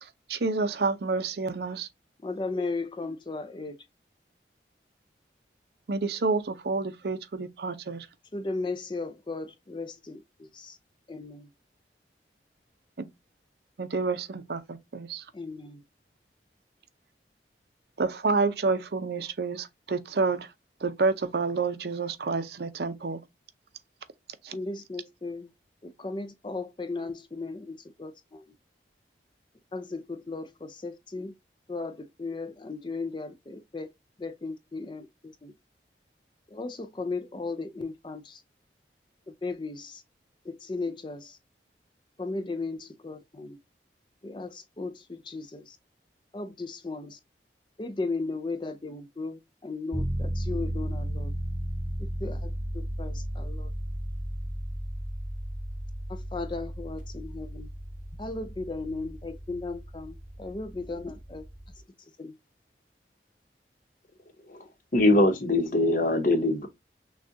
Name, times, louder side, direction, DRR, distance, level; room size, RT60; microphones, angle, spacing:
voice 1, 0.0-1.9 5.9-8.1 13.0-13.1 13.8-15.3 18.0-20.5 20.8-23.2 24.4-24.6, right 4 dB, 65° right, 0.5 m, -29 dB
voice 2, 2.2-3.8 8.3-10.8 11.1-11.5 15.3-15.8 24.5-25.5 25.8-28.5 29.7-31.3 31.7-33.9 34.2-35.5 36.5-38.4 39.3-40.0 40.4-41.4 42.2-43.6 44.2-45.8 46.3-47.2 47.8-51.3 52.2-53.7 56.1-57.7 58.2-61.5 62.2-62.4, left 3 dB, 25° left, 0.4 m, -36 dB
sound 1, 49.9-61.8, equal, 5° right, 1.5 m, -35 dB
voice 3, 64.9-66.7, left 2 dB, 50° left, 0.9 m, -22 dB
6.2 x 2.3 x 2.6 m
head